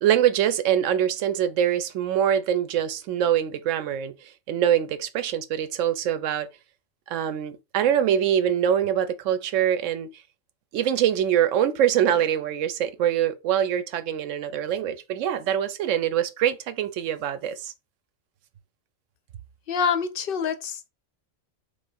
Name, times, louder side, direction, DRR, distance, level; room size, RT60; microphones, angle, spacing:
voice 1, 0.0-4.1 4.5-6.5 7.1-10.1 10.7-17.7, right 10 dB, 85° right, 0.9 m, -24 dB
voice 2, 19.7-20.9, left 6 dB, 60° left, 0.6 m, -26 dB
3.4 x 3.1 x 4.1 m
omnidirectional pair, 1.3 m